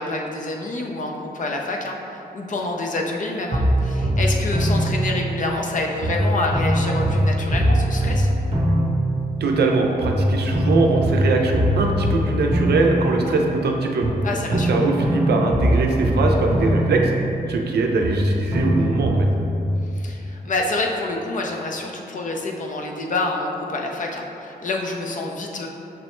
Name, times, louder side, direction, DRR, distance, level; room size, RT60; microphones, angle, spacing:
voice 1, 0.0-8.3 14.2-14.9 19.9-25.7, left 2 dB, 50° left, 1 dB, 0.5 m, -27 dB
sound 1, 3.5-5.7 6.0-9.7 10.0-13.7 14.0-17.7 18.0-19.6, equal, 35° right, 0.7 m, -22 dB
voice 2, 9.4-14.1 14.5-17.1 17.5-19.1, right 3 dB, 80° right, 2 dB, 0.5 m, -21 dB
5.9 x 2.1 x 3.0 m, 2.8 s
cardioid pair, 75°, 17 cm